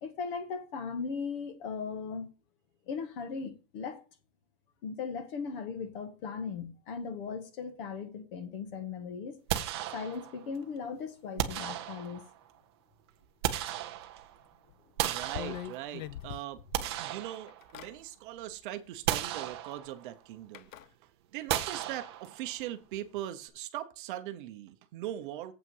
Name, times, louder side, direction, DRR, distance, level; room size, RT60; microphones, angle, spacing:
voice 1, 0.0-2.3 2.9-4.0 4.8-9.4 9.9-12.2, left 5 dB, 45° left, 1.3 m, -38 dB
sound 1, 9.5-10.5 11.4-12.4 13.1-14.4 15.0-16.1 16.5-18.0 18.4-18.5 19.1-20.1 21.5-22.6, right 12 dB, 20° right, 0.4 m, -35 dB
sound 2, 14.7-14.8 15.2-17.0 17.5-17.9 19.2-19.3 20.5-20.9, left 11 dB, 85° left, 0.8 m, -42 dB
voice 2, 15.0-16.6 17.0-20.7 21.3-25.5, right 13 dB, 40° right, 0.8 m, -40 dB
8.0 x 5.7 x 5.4 m
supercardioid pair, 175°, 39 cm